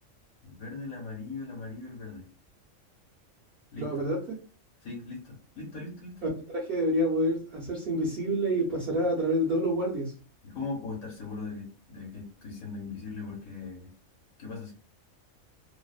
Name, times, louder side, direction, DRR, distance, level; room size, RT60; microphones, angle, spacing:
voice 1, 0.4-2.2 3.7-3.9 4.8-6.2 10.4-13.9 14.4-14.7, left 3 dB, 80° left, -2 dB, 1.2 m, -39 dB
voice 2, 3.8-4.4 6.5-10.1, equal, 55° right, -3 dB, 0.7 m, -28 dB
2.7 x 2.0 x 2.3 m, 0.37 s
omnidirectional pair, 1.4 m